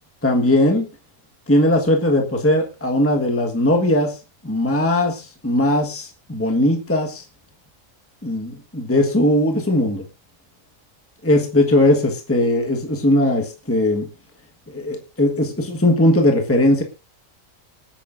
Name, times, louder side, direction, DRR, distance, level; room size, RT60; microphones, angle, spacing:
voice 1, 0.2-0.9 1.5-4.2 4.4-7.2 8.2-10.0 11.2-14.1 14.7-16.8, left 1 dB, 10° left, 2 dB, 1.4 m, -19 dB
26.0 x 8.8 x 2.6 m, 0.29 s
omnidirectional pair, 1.4 m